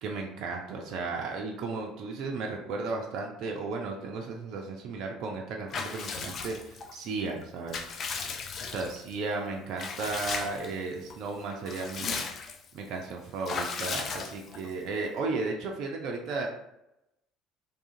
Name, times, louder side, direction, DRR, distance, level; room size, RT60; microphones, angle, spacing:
voice 1, 0.0-7.9 8.6-12.2 12.7-16.5, right 3 dB, 55° right, 1 dB, 0.4 m, -34 dB
Water / Bathtub (filling or washing) / Liquid, 5.7-6.9 7.4-9.1 9.8-10.7 11.1-11.2 11.5-12.7 13.4-14.7, left 5 dB, 45° left, 0.3 m, -36 dB
2.6 x 2.4 x 2.6 m, 0.85 s
figure-of-eight pair, 60°, 0 cm